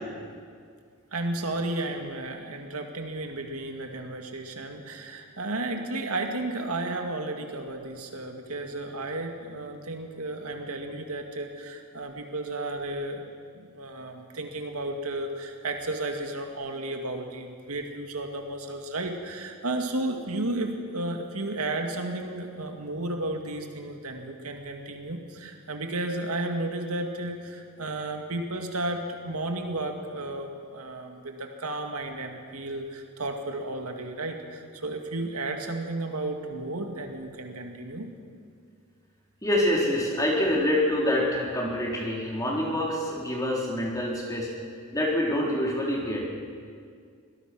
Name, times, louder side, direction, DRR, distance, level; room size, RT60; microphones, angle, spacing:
voice 1, 1.1-38.1, right 2 dB, 80° right, 3 dB, 2.2 m, -33 dB
voice 2, 39.4-44.5 44.9-46.2, left 1 dB, 15° left, -3 dB, 3.9 m, -26 dB
24.0 x 18.0 x 6.2 m, 2.1 s
head